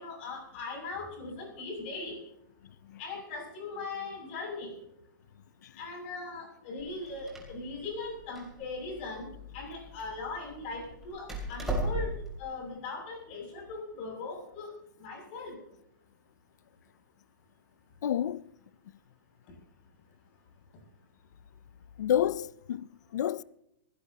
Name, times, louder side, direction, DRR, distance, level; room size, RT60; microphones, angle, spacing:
voice 1, 0.0-2.2 3.0-4.8 5.8-9.3 9.5-14.7 15.0-15.6, left 3 dB, 30° left, 6.8 m, -39 dB
Door, 6.8-12.4, right 1 dB, 5° right, 2.9 m, -38 dB
voice 2, 18.0-18.4 22.0-23.4, left 10 dB, 55° left, 0.5 m, -30 dB
21.5 x 17.0 x 2.9 m
hypercardioid pair, 175°, 11 cm